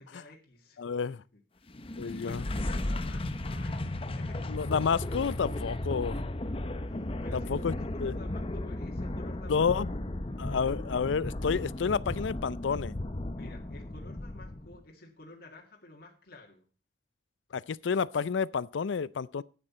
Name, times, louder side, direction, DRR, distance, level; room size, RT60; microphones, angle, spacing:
voice 1, 0.0-1.4 1.7-4.5 6.8-10.4 13.3-16.7, left 2 dB, 55° left, 2.0 m, -52 dB
voice 2, 0.8-1.2 2.0-2.4 4.5-6.2 7.3-7.7 8.0-8.2 9.5-9.9 10.4-12.9 17.5-19.4, left 6 dB, 80° left, 0.4 m, -30 dB
sound 1, 1.7-14.8, left 1 dB, 30° left, 0.8 m, -35 dB
12.5 x 9.3 x 4.3 m
head